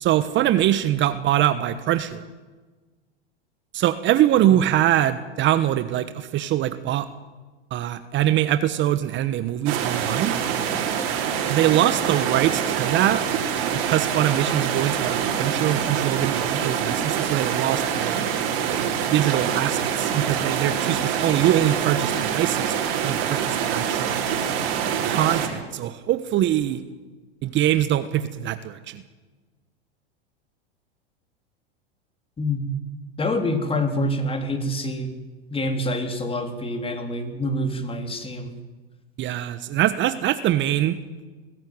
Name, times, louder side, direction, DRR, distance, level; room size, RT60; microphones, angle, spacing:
voice 1, 0.0-2.2 3.7-7.1 7.7-10.4 11.5-13.2 13.8-18.2 19.1-22.8 23.0-24.3 25.0-26.8 27.4-29.0 39.2-41.0, right 12 dB, 40° right, 12 dB, 1.3 m, -23 dB
sound 1, 9.7-25.5, right 8 dB, 60° right, 4.9 m, -25 dB
voice 2, 33.2-35.1 35.5-38.5, left 1 dB, 20° left, 7 dB, 3.3 m, -26 dB
21.0 x 15.5 x 9.6 m, 1.3 s
hypercardioid pair, 100°, 30 cm